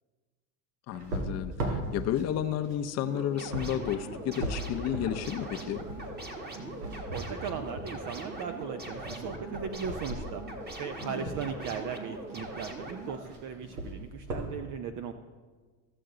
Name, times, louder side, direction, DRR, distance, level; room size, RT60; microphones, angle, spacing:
voice 1, 0.9-5.9 11.0-11.3, left 10 dB, 35° left, 8 dB, 0.6 m, -32 dB
sound 1, 0.9-11.4 12.3-12.7 13.0-14.5, right 1 dB, 85° right, 2.1 m, -39 dB
sound 2, 3.0-13.2, right 2 dB, 20° right, 1.4 m, -41 dB
voice 2, 7.1-10.4 10.8-15.1, right 7 dB, 45° right, 7 dB, 0.6 m, -37 dB
14.5 x 6.7 x 3.8 m, 1.5 s
supercardioid pair, 110°, 45 cm